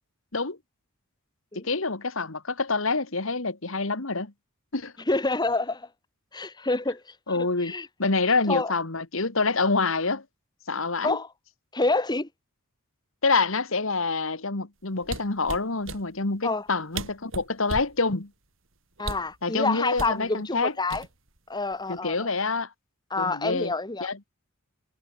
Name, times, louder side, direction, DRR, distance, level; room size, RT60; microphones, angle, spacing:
voice 1, 1.6-4.3 4.7-4.9 7.3-7.7 8.0-10.2 10.7-11.2 13.2-18.3 19.4-20.7 21.9-22.7 23.2-23.7 24.0-24.2, left 3 dB, 65° left, 1.9 m, -26 dB
voice 2, 5.1-5.9 6.3-7.0 7.3-7.9 8.3-8.7 11.0-11.3 11.7-12.3 16.4-16.7 19.0-21.0 21.5-22.3 23.1-24.1, left 3 dB, 20° left, 1.2 m, -27 dB
sound 1, 15.0-16.0 16.7-16.8 16.9-18.0 19.0-19.4 20.0-20.2 20.9-21.4 21.7-22.0, right 3 dB, 60° right, 4.6 m, -35 dB
head